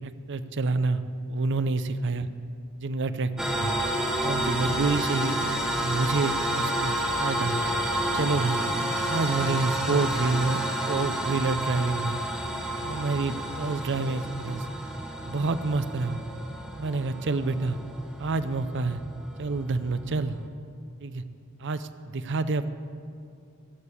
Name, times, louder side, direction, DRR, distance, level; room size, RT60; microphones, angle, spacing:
voice 1, 0.0-1.0 1.3-2.3 2.8-3.7 4.2-5.4 5.8-7.6 8.1-8.6 9.1-12.2 12.8-14.6 15.2-16.2 16.8-17.8 18.2-19.0 19.4-20.4 21.0-21.2 21.6-22.7, right 3 dB, 55° right, 12 dB, 0.6 m, -28 dB
sound 1, 3.4-20.5, right 1 dB, 5° right, 1.0 m, -30 dB
14.0 x 6.6 x 9.0 m, 2.4 s
head